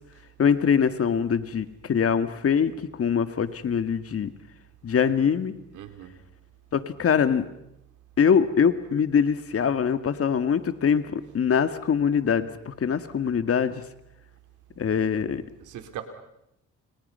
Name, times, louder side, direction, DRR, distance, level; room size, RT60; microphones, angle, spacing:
voice 1, 0.4-2.7 3.0-4.3 4.8-5.5 6.7-7.4 8.2-13.8 14.8-15.4, left 7 dB, 50° left, 10 dB, 2.0 m, -23 dB
voice 2, 5.7-6.2 15.6-16.0, right 11 dB, 85° right, 7 dB, 3.7 m, -39 dB
30.0 x 28.5 x 5.7 m, 0.83 s
cardioid pair, 90°, 30 cm